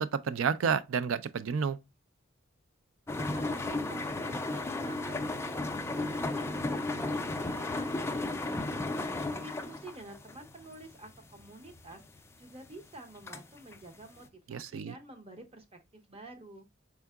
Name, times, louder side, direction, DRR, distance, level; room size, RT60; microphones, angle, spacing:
voice 1, 0.0-1.8 14.5-14.9, right 6 dB, 80° right, 0.4 m, -30 dB
sound 1, 3.1-14.3, left 2 dB, 15° left, 0.3 m, -35 dB
voice 2, 3.3-5.7 5.9-16.7, right 2 dB, 30° right, 0.7 m, -50 dB
4.5 x 3.6 x 2.3 m
head